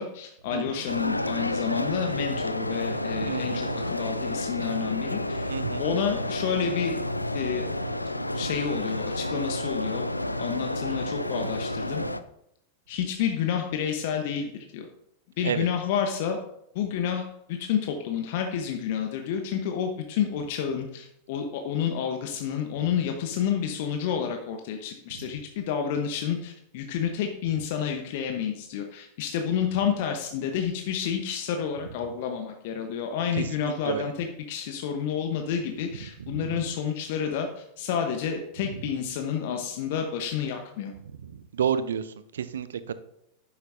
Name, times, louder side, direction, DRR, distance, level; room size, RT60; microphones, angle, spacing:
voice 1, 0.0-5.5 5.8-7.0 7.3-7.7 8.3-10.1 10.4-12.0 12.9-14.9 15.4-16.4 16.7-40.9, left 8 dB, 50° left, 4 dB, 1.1 m, -30 dB
voice 2, 0.5-0.8 3.1-3.6 5.5-5.9 7.5-7.6 15.4-15.7 25.2-25.3 33.3-34.1 36.0-36.6 38.6-38.9 41.2-42.9, right 8 dB, 65° right, 14 dB, 0.7 m, -31 dB
sound 1, 0.9-12.2, left 1 dB, 85° left, 0.5 m, -30 dB
11.0 x 10.0 x 2.7 m, 0.77 s
figure-of-eight pair, 90°, 0 cm